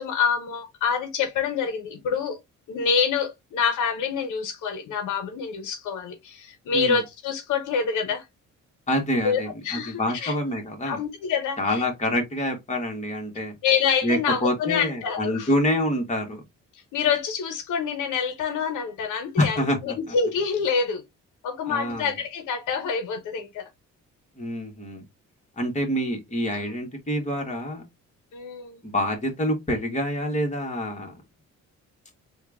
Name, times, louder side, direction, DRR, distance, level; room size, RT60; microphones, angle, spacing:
voice 1, 0.0-2.4 2.7-8.2 9.2-10.3 10.8-11.8 13.6-15.5 16.9-19.6 19.8-21.0 21.4-23.6 26.5-26.7 28.3-28.8, left 6 dB, 80° left, 1.0 m, -26 dB
voice 2, 8.9-11.0 11.6-13.6 14.0-16.4 19.4-20.1 21.7-22.1 24.4-25.0 25.6-27.8 28.8-31.1, left 1 dB, 25° left, 1.7 m, -26 dB
3.6 x 2.5 x 3.4 m
cardioid pair, 90°, 30 cm